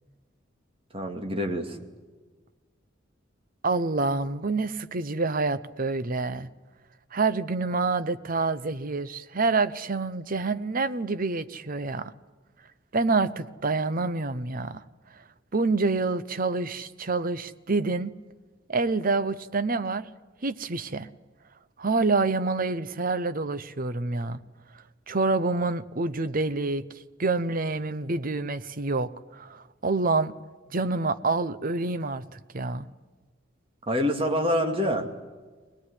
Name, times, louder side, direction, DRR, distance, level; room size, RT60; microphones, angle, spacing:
voice 1, 0.9-1.8 33.9-35.1, equal, 30° right, 4 dB, 2.4 m, -26 dB
voice 2, 3.6-6.5 7.1-12.1 12.9-14.8 15.5-18.1 18.7-20.1 20.4-21.1 21.8-24.4 25.1-26.8 27.2-29.1 29.4-30.3 30.7-32.9, right 3 dB, 45° right, 13 dB, 0.9 m, -27 dB
23.0 x 19.5 x 9.9 m, 1.4 s
head